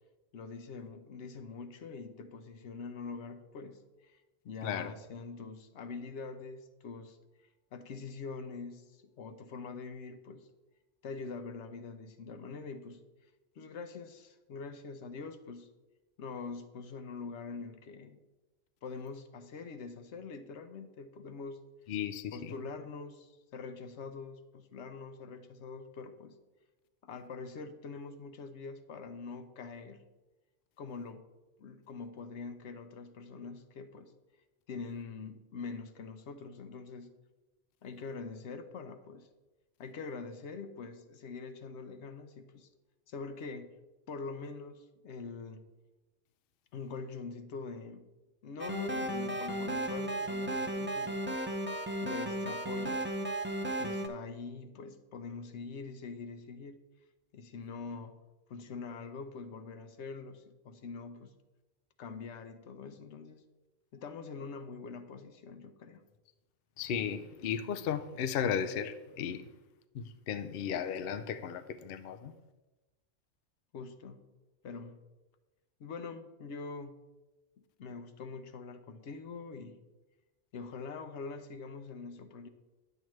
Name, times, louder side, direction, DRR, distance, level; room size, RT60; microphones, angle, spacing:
voice 1, 0.3-7.2 7.7-10.5 11.0-13.0 13.6-15.7 16.2-18.2 18.8-21.6 22.3-26.4 27.0-30.1 30.8-31.3 31.6-34.1 34.7-37.1 37.8-39.3 39.8-42.7 43.1-43.7 44.1-45.6 46.7-48.1 48.4-51.4 52.0-53.2 53.8-56.8 57.3-58.2 58.5-61.3 62.0-63.4 63.9-66.0 73.7-74.3 74.6-75.0 75.8-77.0 77.8-79.8 80.5-82.5, left 4 dB, 85° left, 1.0 m, -44 dB
voice 2, 21.9-22.5 66.8-69.4 69.9-72.3, left 8 dB, 65° left, 0.7 m, -35 dB
sound 1, 48.6-54.1, right 1 dB, 15° right, 0.5 m, -34 dB
10.0 x 7.9 x 3.1 m
omnidirectional pair, 1.2 m